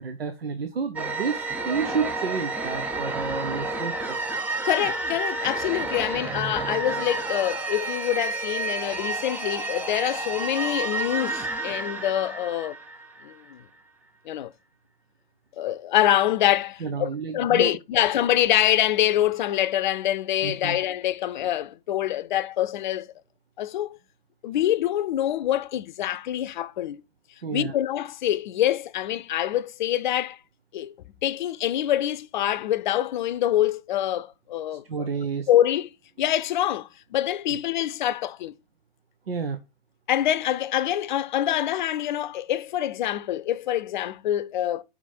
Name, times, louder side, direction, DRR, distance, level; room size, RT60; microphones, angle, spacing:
voice 1, 0.0-4.2 16.8-17.7 20.4-20.8 27.4-27.8 34.9-35.5 39.3-39.6, right 5 dB, 80° right, 1.0 m, -30 dB
sound 1, 1.0-13.5, right 3 dB, 5° right, 0.4 m, -30 dB
voice 2, 4.6-12.8 13.2-13.6 14.3-14.5 15.6-23.1 23.6-24.0 24.4-27.0 27.5-30.4 30.7-30.9 31.2-34.8 35.5-35.9 36.2-38.6 40.1-44.8, left 12 dB, 55° left, 0.6 m, -25 dB
5.2 x 5.0 x 5.4 m
hypercardioid pair, 115°, 29 cm